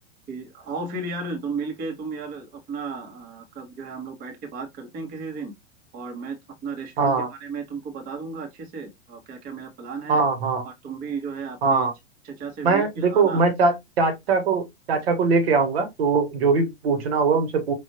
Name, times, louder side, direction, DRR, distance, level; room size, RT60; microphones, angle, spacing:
voice 1, 0.3-5.5 5.9-6.4 6.6-10.2 10.6-11.9 12.2-13.4, right 4 dB, 25° right, 1.2 m, -34 dB
voice 2, 7.0-7.3 10.1-10.6 11.6-11.9 12.6-17.7, right 4 dB, 50° right, 1.4 m, -21 dB
5.1 x 2.7 x 2.9 m
figure-of-eight pair, 105°, 37 cm